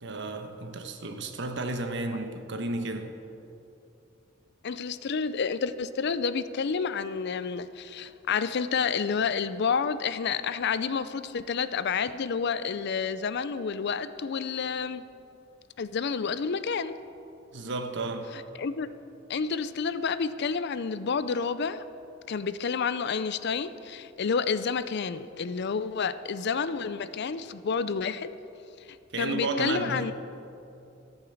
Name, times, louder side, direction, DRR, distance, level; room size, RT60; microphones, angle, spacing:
voice 1, 0.0-3.2 17.5-18.4 29.1-30.1, right 2 dB, 65° right, 1.1 m, -33 dB
voice 2, 4.6-15.0 15.8-16.9 18.3-18.9 19.3-21.8 22.3-28.3 29.2-30.1, left 5 dB, 55° left, 0.5 m, -29 dB
14.0 x 8.9 x 7.1 m
head